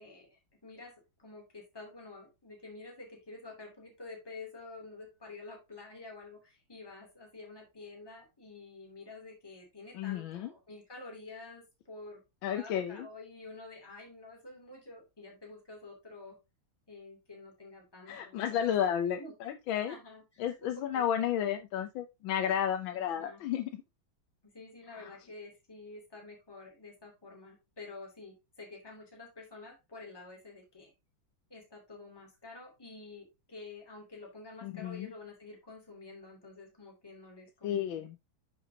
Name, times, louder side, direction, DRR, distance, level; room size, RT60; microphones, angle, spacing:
voice 1, 0.0-12.2 12.5-16.4 16.9-18.6 19.2-19.5 19.8-21.3 22.9-23.4 24.5-30.9 31.5-38.1, left 3 dB, 10° left, 0 dB, 2.8 m, -49 dB
voice 2, 9.9-10.5 12.4-13.1 18.1-19.9 20.4-23.8 24.9-25.1 34.6-35.1 37.6-38.2, left 9 dB, 80° left, 6 dB, 1.5 m, -32 dB
10.0 x 5.6 x 2.8 m, 0.23 s
omnidirectional pair, 2.2 m